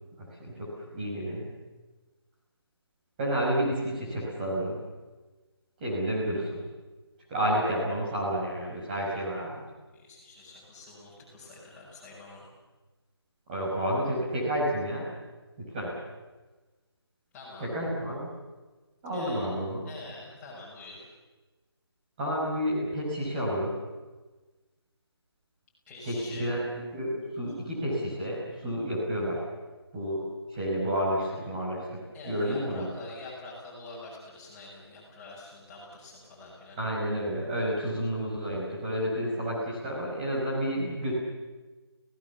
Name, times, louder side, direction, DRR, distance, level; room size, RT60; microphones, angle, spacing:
voice 1, 0.2-1.4 3.2-4.8 5.8-6.6 7.3-9.6 13.5-15.1 15.6-15.9 17.6-18.3 19.0-19.9 22.2-23.7 26.1-26.6 26.9-29.4 29.9-30.2 30.5-32.0 32.3-32.9 36.8-41.1, equal, 20° right, -5 dB, 5.4 m, -30 dB
voice 2, 9.9-12.5 17.3-17.7 19.1-19.6 19.8-21.1 25.9-26.5 32.1-36.8, left 2 dB, 10° left, -6 dB, 6.2 m, -45 dB
29.5 x 17.5 x 7.2 m, 1.2 s
figure-of-eight pair, 160°, 14 cm